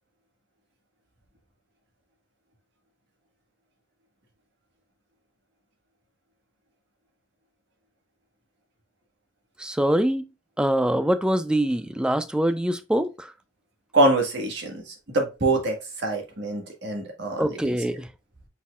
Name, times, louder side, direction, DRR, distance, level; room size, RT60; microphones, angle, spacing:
voice 1, 9.6-10.3 10.6-13.3 17.4-18.1, right 1 dB, 5° right, 0.3 m, -24 dB
voice 2, 13.9-17.4, right 2 dB, 60° right, 1.4 m, -24 dB
5.4 x 4.3 x 2.3 m
head